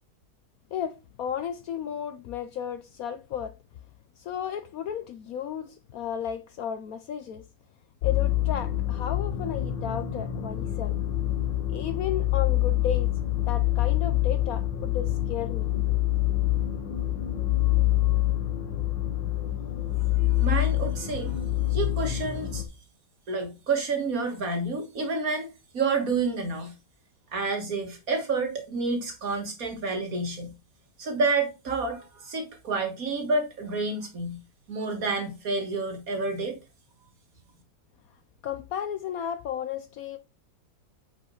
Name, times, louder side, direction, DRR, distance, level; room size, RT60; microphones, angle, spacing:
voice 1, 0.7-3.5 4.2-7.5 8.0-11.0 11.7-13.1 13.5-15.8 38.4-40.2, left 8 dB, 70° left, 0.9 m, -34 dB
sound 1, 8.0-22.6, left 14 dB, 85° left, 1.6 m, -26 dB
voice 2, 20.4-21.4 21.7-22.6 23.3-25.5 25.7-26.7 27.3-30.5 31.0-34.4 34.7-36.6, right 3 dB, 50° right, 2.1 m, -29 dB
8.3 x 5.1 x 3.9 m
omnidirectional pair, 1.9 m